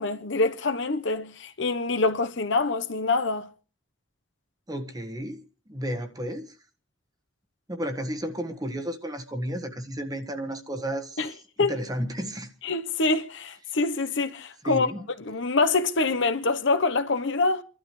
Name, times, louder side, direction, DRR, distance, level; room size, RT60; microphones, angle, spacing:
voice 1, 0.0-3.5 11.2-11.3 11.6-11.7 12.6-14.9 15.2-17.6, left 3 dB, 65° left, 1.0 m, -25 dB
voice 2, 4.7-5.4 5.7-6.5 7.7-11.2 11.6-12.5 14.6-15.1, equal, 20° right, 1.4 m, -32 dB
29.0 x 12.0 x 3.3 m
head